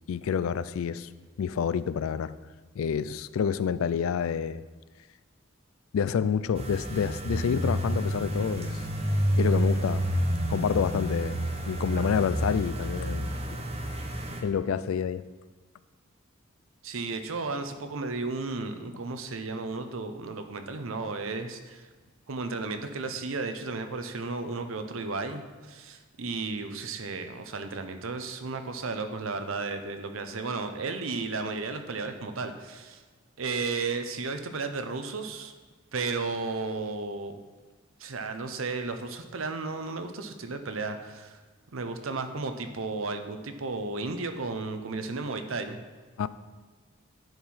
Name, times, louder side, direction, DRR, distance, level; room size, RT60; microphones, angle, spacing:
voice 1, 0.1-1.1 1.4-2.3 2.8-4.6 5.9-8.8 9.4-10.1 10.5-11.4 11.7-13.6 14.4-15.2 46.2-46.3, left 7 dB, 85° left, 16 dB, 0.3 m, -28 dB
sound 1, 6.5-14.4, equal, 30° right, 0.8 m, -29 dB
voice 2, 16.8-21.9 22.3-33.0 33.4-35.5 35.9-37.4 38.0-41.4 41.7-45.8, right 3 dB, 80° right, 7 dB, 0.7 m, -34 dB
10.5 x 4.7 x 4.2 m, 1.4 s
head